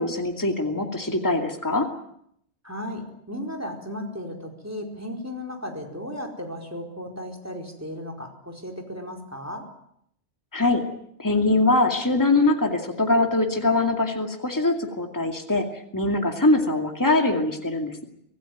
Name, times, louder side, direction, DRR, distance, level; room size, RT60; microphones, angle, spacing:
voice 1, 0.0-1.9 10.5-10.8 11.2-15.6 15.9-18.0, left 2 dB, 15° left, 4 dB, 2.4 m, -22 dB
voice 2, 2.6-9.7, left 1 dB, 15° right, 3 dB, 4.5 m, -35 dB
25.5 x 16.5 x 9.4 m, 0.72 s
omnidirectional pair, 1.2 m